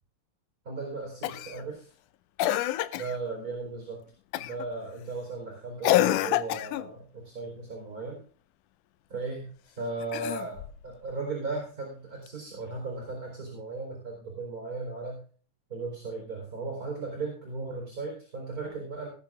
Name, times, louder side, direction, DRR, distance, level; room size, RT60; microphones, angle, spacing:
voice 1, 0.6-1.9 2.9-4.0 4.4-8.2 9.1-15.2 15.7-19.1, right 3 dB, 25° right, 0 dB, 4.8 m, -36 dB
Cough, 1.2-1.6 2.4-3.2 4.3-4.7 5.8-6.9 10.0-10.8 12.3-12.4, left 14 dB, 80° left, 2.2 m, -27 dB
18.5 x 8.4 x 3.8 m, 0.40 s
omnidirectional pair, 3.6 m